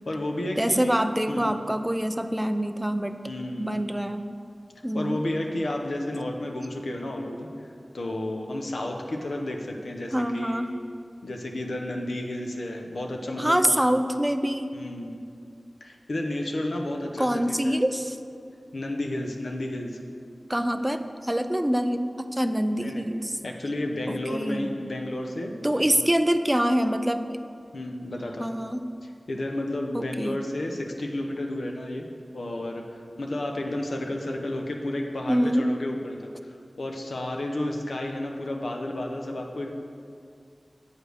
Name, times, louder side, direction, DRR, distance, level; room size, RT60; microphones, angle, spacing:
voice 1, 0.1-1.0 1.3-1.5 3.3-3.8 4.9-10.6 11.2-13.8 14.7-15.1 15.8-17.7 18.7-20.0 22.8-23.0 23.4-25.8 27.7-28.5 29.0-32.1 32.3-36.3 36.8-39.7, left 1 dB, 85° left, 2 dB, 0.9 m, -32 dB
voice 2, 0.6-3.1 3.6-4.3 4.8-5.2 10.1-10.7 13.4-14.7 17.2-18.2 20.5-23.4 24.1-24.8 25.6-27.4 28.4-28.9 29.9-30.4 35.3-35.7, equal, 10° right, 8 dB, 0.4 m, -25 dB
8.4 x 5.1 x 6.4 m, 2.4 s
wide cardioid pair, 80°, 0 cm